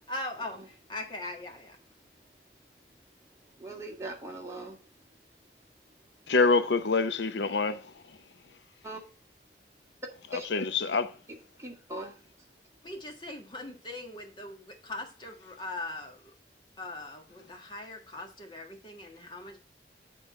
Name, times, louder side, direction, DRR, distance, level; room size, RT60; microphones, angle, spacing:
voice 1, 0.1-1.8 12.8-16.2 16.8-19.6, left 2 dB, 25° left, 1.7 m, -40 dB
voice 2, 2.5-5.4 5.7-6.3 8.8-9.1 10.0-10.5 11.3-12.6, right 1 dB, 15° right, 2.1 m, -43 dB
voice 3, 6.3-7.9 10.5-11.2, left 4 dB, 85° left, 0.7 m, -26 dB
9.9 x 3.9 x 5.7 m
head